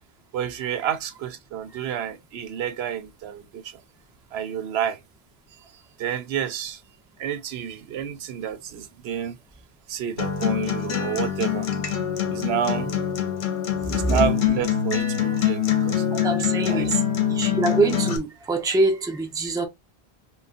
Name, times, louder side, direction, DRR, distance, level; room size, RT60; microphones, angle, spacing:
voice 1, 0.3-3.8 4.3-5.0 6.0-6.8 7.2-9.4 9.9-11.7 12.3-12.9 13.9-16.1 16.5-16.9, right 9 dB, 80° right, 0.8 m, -29 dB
Acoustic guitar, 10.2-18.2, left 9 dB, 55° left, 0.8 m, -24 dB
voice 2, 13.9-14.2 16.1-17.0 17.3-19.7, right 3 dB, 5° right, 0.5 m, -24 dB
3.7 x 2.1 x 2.4 m
omnidirectional pair, 1.1 m